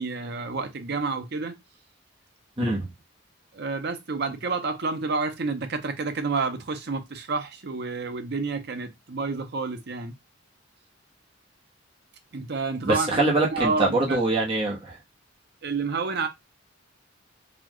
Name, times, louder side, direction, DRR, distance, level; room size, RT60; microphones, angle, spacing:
voice 1, 0.0-1.6 3.5-10.1 12.3-14.2 15.6-16.3, right 4 dB, 55° right, 0.7 m, -29 dB
voice 2, 2.6-2.9 12.8-15.0, right 2 dB, 30° right, 1.1 m, -24 dB
4.1 x 2.4 x 3.0 m
head